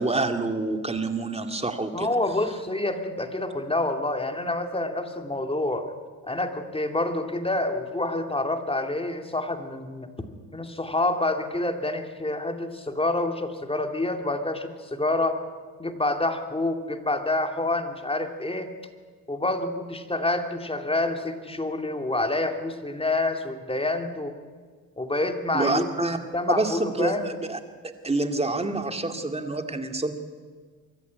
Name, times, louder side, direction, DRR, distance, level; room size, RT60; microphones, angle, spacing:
voice 1, 0.0-2.1 25.5-26.2 26.5-27.6 27.8-30.2, right 2 dB, 15° right, 6 dB, 2.4 m, -27 dB
voice 2, 1.9-5.9 6.3-10.3 10.5-15.4 15.8-18.7 19.3-24.3 25.0-27.3, left 2 dB, 15° left, 6 dB, 2.6 m, -27 dB
24.0 x 14.0 x 9.6 m, 1.5 s
supercardioid pair, 75°, 40 cm